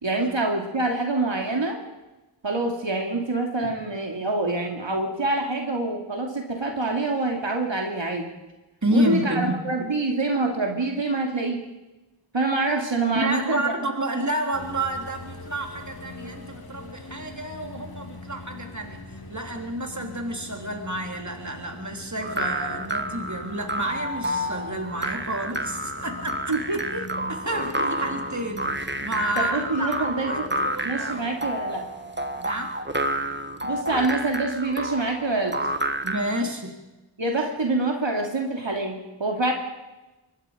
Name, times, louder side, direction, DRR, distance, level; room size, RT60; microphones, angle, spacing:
voice 1, 0.0-1.8 2.4-8.3 8.9-11.6 12.3-13.6 26.5-26.8 29.4-30.5 30.8-31.8 33.6-35.6 37.2-39.5, right 2 dB, 75° right, 1 dB, 2.8 m, -26 dB
voice 2, 8.8-9.6 13.1-26.8 27.3-31.5 32.4-32.8 36.0-36.8, right 1 dB, 40° right, 3 dB, 3.6 m, -30 dB
sound 1, 14.5-34.5, left 3 dB, 55° left, 2.4 m, -43 dB
sound 2, 22.2-36.4, right 1 dB, 25° right, 1.5 m, -30 dB
24.5 x 21.0 x 5.2 m, 1.1 s
wide cardioid pair, 50°, 45 cm